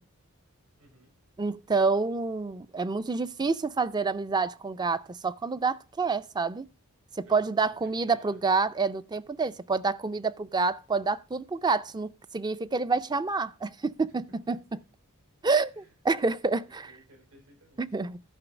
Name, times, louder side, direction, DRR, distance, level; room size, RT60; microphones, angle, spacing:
voice 1, 0.8-1.1 7.2-8.4 14.1-14.8 15.7-15.9 16.6-17.9, right 2 dB, 85° right, 7.1 m, -58 dB
voice 2, 1.4-6.7 7.2-14.6 15.4-16.9 17.8-18.2, right 4 dB, 20° right, 0.4 m, -28 dB
11.5 x 5.4 x 6.1 m
head